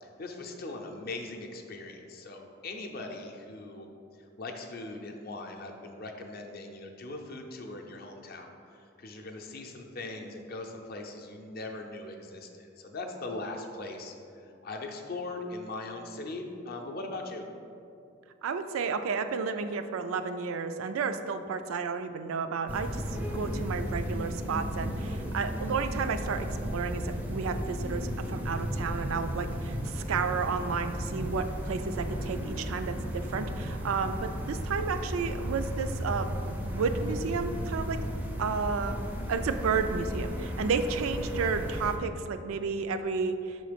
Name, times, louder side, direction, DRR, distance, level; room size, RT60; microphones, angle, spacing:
voice 1, 0.0-3.9 4.2-17.5, left 2 dB, 45° left, 3 dB, 0.5 m, -40 dB
voice 2, 18.4-23.0 23.3-36.3 36.6-38.0 38.4-39.0 39.3-43.6, right 5 dB, 85° right, 9 dB, 0.4 m, -32 dB
sound 1, 22.7-42.0, equal, 10° right, 0.4 m, -34 dB
5.6 x 3.8 x 5.1 m, 2.6 s
head